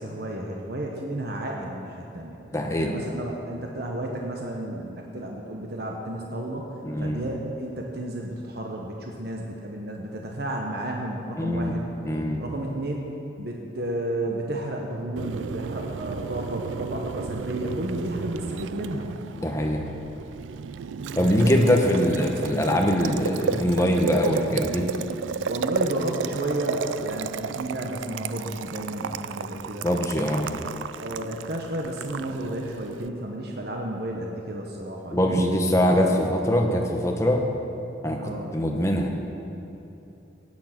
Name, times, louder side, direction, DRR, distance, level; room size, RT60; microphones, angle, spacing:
voice 1, 0.0-2.4 2.8-6.7 7.0-11.9 12.4-19.1 21.4-22.1 25.4-29.9 31.0-36.1 38.2-38.5, right 1 dB, 55° right, 0 dB, 1.1 m, -32 dB
voice 2, 2.5-2.9 6.8-7.2 11.4-11.7 12.0-12.4 19.4-19.8 21.1-24.9 29.8-30.5 35.1-37.4 38.0-39.2, equal, 15° left, 2 dB, 1.2 m, -23 dB
Boiling, 15.2-33.1, right 6 dB, 85° right, 0.4 m, -33 dB
16.0 x 8.6 x 6.0 m, 2.9 s
head